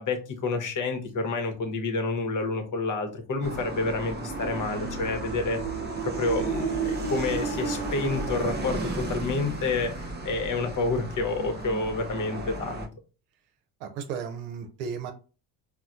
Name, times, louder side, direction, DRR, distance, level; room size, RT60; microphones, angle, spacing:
voice 1, 0.0-5.6 6.0-12.9, left 3 dB, 40° left, 5 dB, 0.9 m, -29 dB
sound 1, 3.4-12.9, right 3 dB, 20° right, 0.5 m, -33 dB
voice 2, 13.8-15.1, right 6 dB, 85° right, 6 dB, 0.8 m, -34 dB
4.1 x 2.2 x 2.4 m, 0.35 s
supercardioid pair, 80°, 47 cm